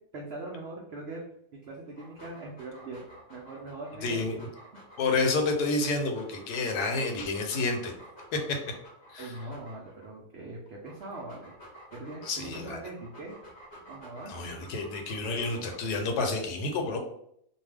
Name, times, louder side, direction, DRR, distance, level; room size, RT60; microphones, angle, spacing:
voice 1, 0.1-1.2 1.6-3.0 3.3-4.4 9.2-11.5 11.9-13.3 13.9-14.3, right 2 dB, 80° right, -1 dB, 0.5 m, -41 dB
Dog, 1.9-10.1 10.7-16.1, equal, 45° left, 0.7 m, -50 dB
voice 2, 4.0-4.4 5.0-7.9 8.3-8.6 9.1-9.3 12.2-12.8 14.3-17.0, left 3 dB, 85° left, 4 dB, 1.2 m, -29 dB
2.6 x 2.2 x 3.3 m, 0.71 s
omnidirectional pair, 1.7 m